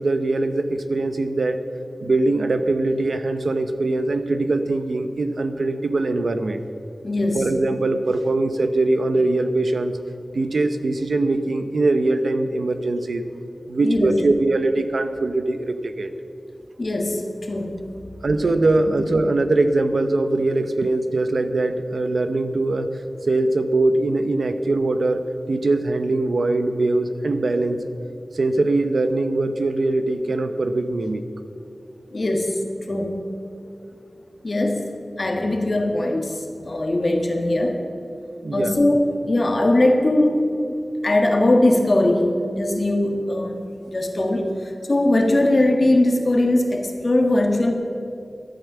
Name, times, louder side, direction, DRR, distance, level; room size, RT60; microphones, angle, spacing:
voice 1, 0.0-1.6 2.0-6.6 7.3-9.9 10.3-13.2 13.7-16.1 18.2-25.2 25.5-27.8 28.3-31.2 38.4-38.8, right 2 dB, 75° right, 9 dB, 0.8 m, -22 dB
voice 2, 7.0-7.5 13.8-14.2 16.8-17.8 32.1-32.6 32.9-33.2 34.4-34.9 35.2-37.8 38.5-40.8 41.0-43.6 43.9-47.7, left 1 dB, 50° left, 3 dB, 1.7 m, -20 dB
13.0 x 9.0 x 7.3 m, 2.7 s
wide cardioid pair, 85°, 0 cm